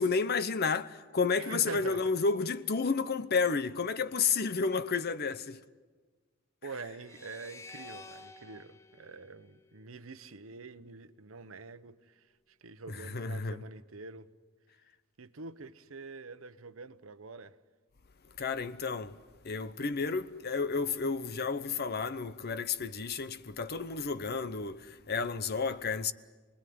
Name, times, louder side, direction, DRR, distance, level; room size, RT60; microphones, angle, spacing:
voice 1, 0.0-5.6 12.9-13.6 18.4-19.2 19.4-26.1, left 5 dB, 50° left, 0.8 m, -31 dB
voice 2, 1.4-2.1 6.6-12.2 12.6-14.3 15.2-17.6, right 4 dB, 70° right, 1.0 m, -45 dB
sound 1, 7.0-10.3, left 3 dB, 15° left, 0.8 m, -51 dB
28.5 x 20.5 x 9.4 m
head